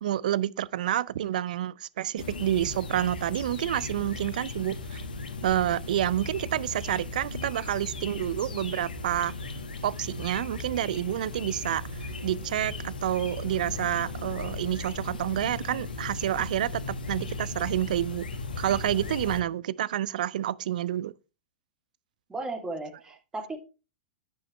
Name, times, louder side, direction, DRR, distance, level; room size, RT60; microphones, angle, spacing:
voice 1, 0.0-5.0 5.4-9.3 9.8-18.3 18.6-21.1, right 12 dB, 60° right, 0.4 m, -29 dB
sound 1, 2.2-19.4, left 3 dB, 80° left, 1.5 m, -37 dB
voice 2, 22.3-23.6, right 2 dB, 15° right, 2.6 m, -35 dB
10.5 x 8.5 x 3.2 m
figure-of-eight pair, 100°, 5 cm